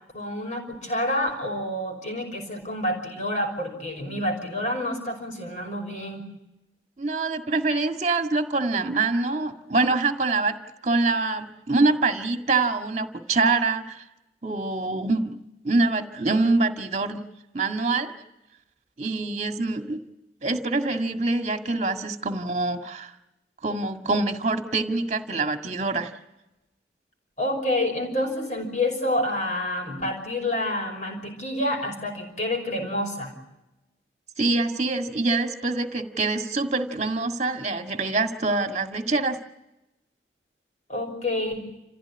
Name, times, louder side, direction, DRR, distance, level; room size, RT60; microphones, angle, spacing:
voice 1, 0.1-6.3 27.4-33.3 40.9-41.6, left 1 dB, 40° left, 3 dB, 5.5 m, -28 dB
voice 2, 7.0-10.5 10.8-14.0 14.4-15.4 15.6-17.2 17.5-18.1 19.0-20.0 20.4-23.1 23.6-26.1 34.4-39.4, right 3 dB, 40° right, 5 dB, 1.8 m, -25 dB
29.0 x 15.5 x 9.8 m, 0.97 s
head